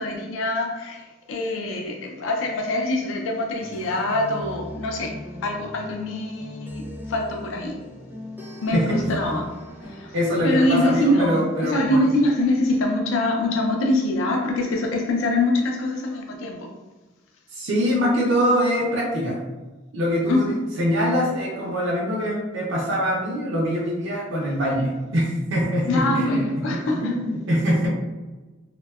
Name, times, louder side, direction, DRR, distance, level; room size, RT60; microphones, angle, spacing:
voice 1, 0.0-6.8 7.1-7.8 8.6-9.5 9.8-10.1 10.4-16.7 20.3-20.6 25.9-27.2, left 1 dB, 75° left, 0.4 m, -24 dB
sound 1, 3.6-11.1, left 1 dB, 10° right, 0.5 m, -39 dB
voice 2, 8.7-9.0 10.1-12.1 17.5-19.4 19.9-26.5 26.7-27.9, equal, 65° right, 0.5 m, -23 dB
2.6 x 2.1 x 2.2 m
head